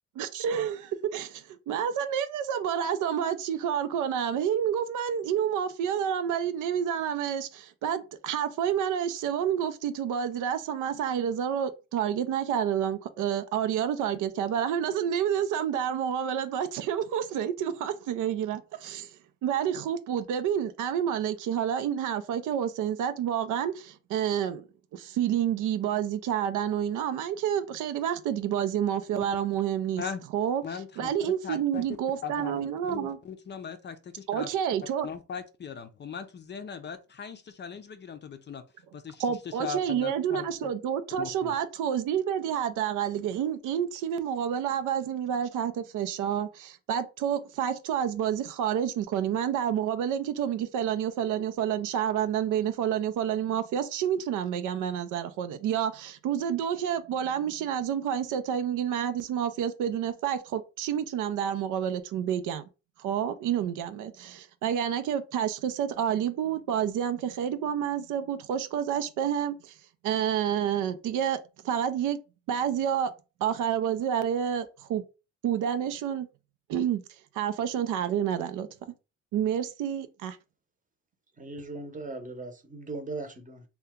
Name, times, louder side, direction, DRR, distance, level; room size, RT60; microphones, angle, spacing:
voice 1, 0.2-19.1 19.4-24.7 24.9-30.0 30.3-30.6 31.0-33.2 34.3-35.1 39.2-62.6 63.0-69.7 70.0-71.4 71.6-72.2 72.5-73.1 73.4-75.0 75.4-76.3 76.7-77.0 77.3-78.7 79.3-80.4, right 9 dB, 85° right, 0.5 m, -29 dB
voice 2, 30.6-34.5 35.0-38.6 38.9-39.2 39.6-40.7 41.2-41.5, left 6 dB, 35° left, 0.4 m, -39 dB
voice 3, 81.4-83.6, right 2 dB, 25° right, 0.8 m, -38 dB
2.8 x 2.2 x 3.5 m
cardioid pair, 90°, 30 cm